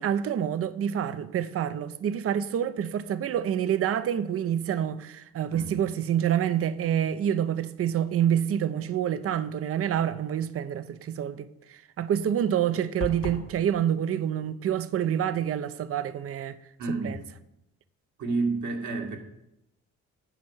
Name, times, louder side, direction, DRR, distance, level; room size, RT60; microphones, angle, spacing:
voice 1, 0.0-16.6 16.9-17.2, right 9 dB, 50° right, 0.6 m, -27 dB
sound 1, 13.0-13.5, left 4 dB, 75° left, 2.0 m, -34 dB
voice 2, 16.8-17.2 18.2-19.2, right 3 dB, 70° right, 2.0 m, -29 dB
9.2 x 4.6 x 7.1 m
cardioid pair, 90°, 30 cm